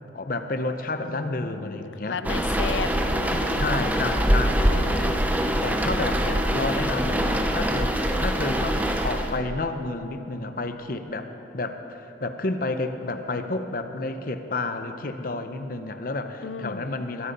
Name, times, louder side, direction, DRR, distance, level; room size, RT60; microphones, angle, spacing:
voice 1, 0.1-2.2 3.6-4.8 5.6-6.3 6.5-17.3, left 2 dB, 50° left, 8 dB, 0.8 m, -30 dB
voice 2, 1.0-3.7 4.6-5.5 6.2-6.4 16.4-16.9, left 5 dB, 75° left, 13 dB, 0.5 m, -35 dB
sound 1, 2.2-9.4, equal, 10° right, 0.7 m, -24 dB
21.5 x 8.3 x 5.3 m, 3.0 s
head